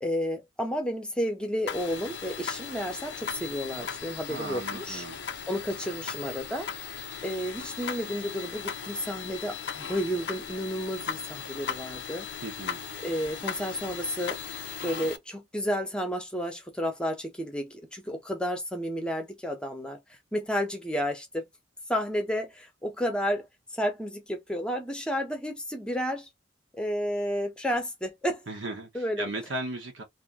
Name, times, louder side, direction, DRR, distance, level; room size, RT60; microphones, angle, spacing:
voice 1, 0.0-6.7 7.2-12.3 13.0-14.4 14.8-20.0 20.3-21.5 21.9-23.5 23.7-26.3 26.7-28.4 28.9-29.3, equal, 5° left, 0.8 m, -31 dB
sound 1, 1.7-15.2, left 7 dB, 60° left, 0.4 m, -37 dB
voice 2, 4.3-5.2 12.4-12.8 28.5-30.0, right 2 dB, 70° right, 0.9 m, -36 dB
2.7 x 2.6 x 3.6 m
head